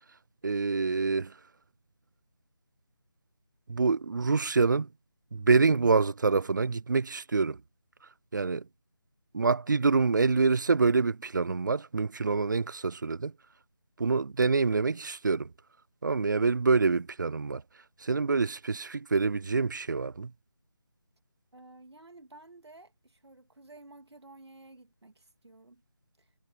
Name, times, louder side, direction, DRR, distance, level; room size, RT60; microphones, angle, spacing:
voice 1, 0.4-1.3 3.7-4.9 5.3-7.6 8.3-8.7 9.3-13.3 14.0-15.5 16.0-17.6 18.0-20.3, right 4 dB, 45° right, 0.4 m, -26 dB
voice 2, 21.5-25.8 26.2-26.3, right 2 dB, 75° right, 2.9 m, -53 dB
figure-of-eight pair, 165°, 14 cm